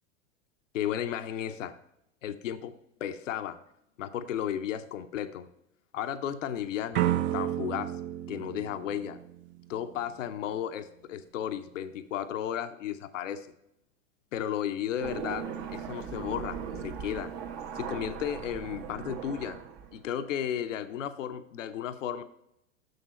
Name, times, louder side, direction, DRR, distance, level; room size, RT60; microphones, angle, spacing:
voice 1, 0.7-1.8 2.2-2.7 3.0-3.6 4.0-5.5 5.9-7.9 8.3-9.2 9.7-13.5 14.3-17.3 17.7-19.6 19.9-22.2, left 10 dB, 75° left, 11 dB, 0.7 m, -34 dB
sound 1, 6.9-9.8, right 12 dB, 30° right, 0.6 m, -31 dB
sound 2, 15.0-20.1, right 7 dB, 50° right, 1.1 m, -39 dB
6.7 x 6.4 x 4.2 m, 0.79 s
hypercardioid pair, 90°, 38 cm